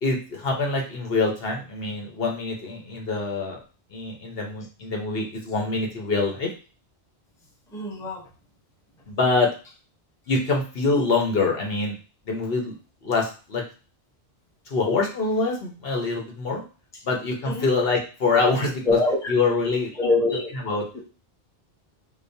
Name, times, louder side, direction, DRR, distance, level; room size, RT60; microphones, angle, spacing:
voice 1, 0.0-3.6 3.9-6.5 9.1-9.5 10.3-11.9 12.3-12.7 13.0-13.6 14.7-16.6 17.0-19.0 19.3-19.9 20.6-20.8, left 3 dB, 60° left, 0 dB, 1.1 m, -25 dB
voice 2, 7.7-8.3 17.4-17.7 18.8-19.3 20.0-20.5, left 2 dB, 5° left, -2 dB, 0.7 m, -24 dB
5.0 x 2.1 x 2.6 m, 0.34 s
omnidirectional pair, 1.1 m